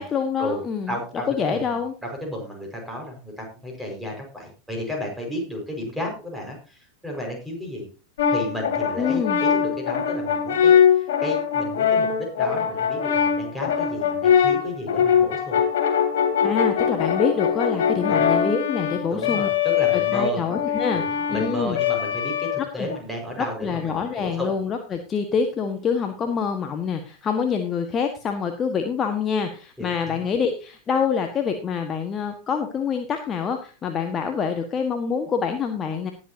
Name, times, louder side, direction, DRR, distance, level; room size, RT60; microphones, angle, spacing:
voice 1, 0.0-1.0 1.3-1.9 8.9-9.4 16.4-19.5 19.9-21.0 21.3-21.8 22.8-22.9 23.6-36.1, left 6 dB, 25° left, 5 dB, 1.5 m, -26 dB
voice 2, 0.9-7.9 8.3-15.6 18.1-18.3 19.1-20.4 20.9-24.5 29.8-30.2, equal, ahead, 0 dB, 5.1 m, -33 dB
Brass instrument, 8.2-23.0, left 8 dB, 60° left, 2.0 m, -22 dB
19.0 x 7.6 x 2.8 m, 0.35 s
figure-of-eight pair, 90°, 0 cm